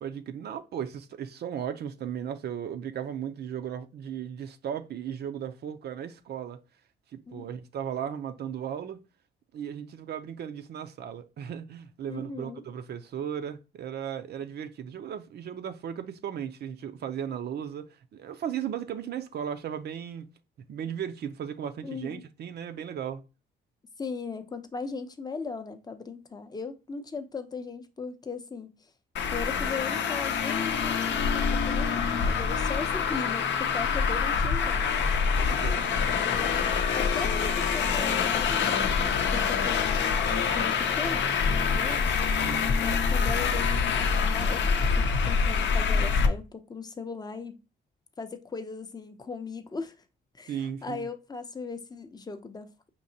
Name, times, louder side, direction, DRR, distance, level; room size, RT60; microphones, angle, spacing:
voice 1, 0.0-6.6 7.1-9.0 9.5-20.3 20.7-23.2 35.3-35.9 42.4-42.7 50.5-51.1, right 9 dB, 55° right, 0.5 m, -36 dB
voice 2, 12.1-12.6 21.8-22.2 24.0-28.9 29.3-34.9 36.0-42.5 42.8-44.7 44.9-47.6 48.2-50.0 50.3-52.7, left 4 dB, 20° left, 0.5 m, -38 dB
Traffic noise roadway noise, 29.2-46.3, left 6 dB, 65° left, 0.6 m, -26 dB
5.3 x 2.8 x 2.7 m
cardioid pair, 90°, 20 cm